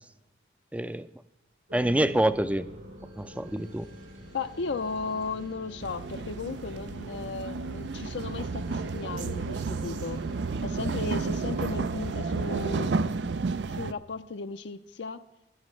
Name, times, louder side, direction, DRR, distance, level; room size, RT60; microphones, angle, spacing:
voice 1, 0.7-1.1 1.7-2.7 3.2-3.9, right 1 dB, 5° right, 13 dB, 0.4 m, -26 dB
sound 1, 1.7-13.0, equal, 90° right, 6.0 m, -47 dB
voice 2, 4.3-10.2 10.6-13.1 13.7-15.3, left 4 dB, 75° left, 8 dB, 0.6 m, -35 dB
sound 2, 5.8-13.9, right 4 dB, 70° right, 0.5 m, -31 dB
20.0 x 10.5 x 3.2 m, 0.94 s
head